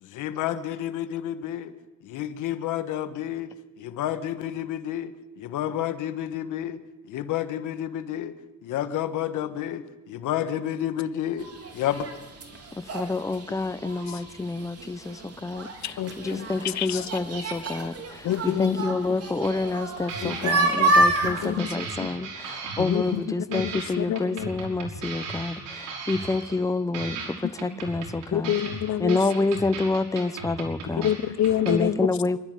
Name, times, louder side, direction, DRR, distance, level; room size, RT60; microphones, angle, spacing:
voice 1, 0.1-1.7 2.0-3.5 3.8-5.1 5.4-6.8 7.1-8.3 8.6-11.5 11.7-12.1, left 11 dB, 90° left, 10 dB, 1.5 m, -30 dB
sound 1, 11.4-21.6, right 2 dB, 50° right, 4.1 m, -28 dB
voice 2, 12.9-27.2 27.4-28.5 29.0-31.1 31.7-32.4, left 3 dB, 10° left, 12 dB, 0.9 m, -28 dB
voice 3, 15.8-17.1 18.2-18.9 20.2-20.5 21.2-22.1 22.8-23.2 23.5-24.5 27.4-27.5 28.3-29.2 30.9-32.1, left 11 dB, 65° left, 14 dB, 1.1 m, -28 dB
sound 2, 19.4-19.8 20.1-23.3 23.5-26.7 26.9-31.7, right 4 dB, 85° right, 5.4 m, -37 dB
26.0 x 12.5 x 9.2 m, 1.1 s
cardioid pair, 90°, 30 cm